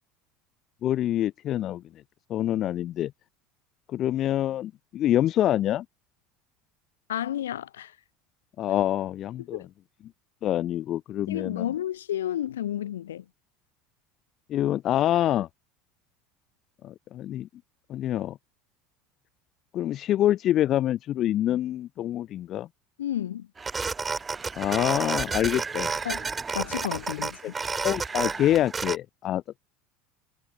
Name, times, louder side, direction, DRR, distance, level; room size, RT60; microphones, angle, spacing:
voice 1, 0.8-1.8 2.3-3.1 3.9-5.8 8.6-9.6 10.4-11.7 14.5-15.5 16.8-17.5 17.9-18.4 19.7-22.7 24.6-25.9 27.8-29.6, left 12 dB, 45° left, 0.7 m, -26 dB
voice 2, 7.1-7.9 9.5-9.7 11.3-13.2 23.0-23.5 26.0-26.3 26.5-27.5, left 11 dB, 75° left, 1.7 m, -31 dB
sound 1, 23.6-29.0, right 4 dB, 20° right, 2.7 m, -31 dB
figure-of-eight pair, 70°, 0 cm